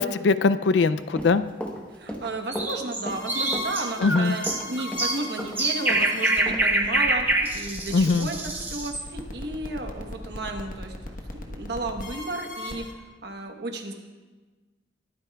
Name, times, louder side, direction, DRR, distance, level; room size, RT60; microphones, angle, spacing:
voice 1, 0.0-1.4 4.0-4.4 7.9-8.3, left 4 dB, 70° left, 13 dB, 0.4 m, -21 dB
Run, 1.0-6.1 6.5-6.6, equal, 5° left, 1.0 m, -35 dB
voice 2, 1.9-12.9 13.2-13.9, right 2 dB, 60° right, 4 dB, 1.1 m, -33 dB
sound 1, 2.5-9.1, right 2 dB, 10° right, 0.7 m, -26 dB
sound 2, 3.1-12.9, left 1 dB, 45° left, 1.2 m, -37 dB
21.5 x 9.2 x 2.3 m, 1.3 s
head